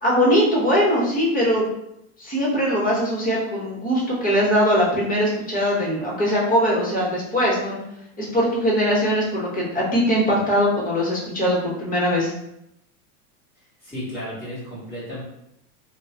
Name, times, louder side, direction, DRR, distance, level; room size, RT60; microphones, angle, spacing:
voice 1, 0.0-1.7 2.2-7.8 8.2-12.3, equal, 20° left, -4 dB, 1.1 m, -21 dB
voice 2, 13.8-15.2, equal, ahead, -11 dB, 1.4 m, -33 dB
3.0 x 2.3 x 3.7 m, 0.81 s
supercardioid pair, 130°, 46 cm